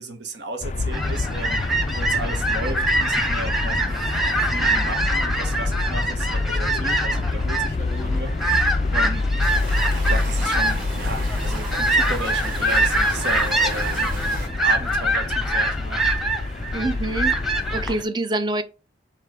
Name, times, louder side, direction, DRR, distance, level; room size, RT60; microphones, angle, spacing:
voice 1, 0.0-4.1 4.4-9.2 9.9-16.0, right 1 dB, 70° right, 1.6 m, -34 dB
sound 1, 0.6-17.9, left 3 dB, 40° left, 0.3 m, -27 dB
sound 2, 0.9-18.0, right 1 dB, ahead, 0.9 m, -24 dB
sound 3, 9.4-14.5, right 1 dB, 50° right, 3.4 m, -34 dB
voice 2, 16.7-17.3 17.7-18.6, right 2 dB, 25° right, 0.6 m, -25 dB
7.3 x 3.3 x 5.1 m
head